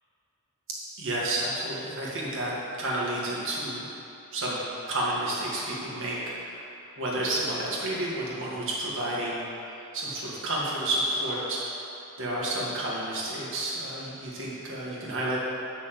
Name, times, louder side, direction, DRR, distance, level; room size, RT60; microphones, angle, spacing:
voice 1, 1.0-2.5 2.8-3.9 4.3-4.6 4.9-6.5 7.0-9.4 9.9-11.6 12.2-15.4, right 1 dB, 60° right, -5 dB, 2.1 m, -30 dB
7.0 x 6.2 x 7.7 m, 2.9 s
head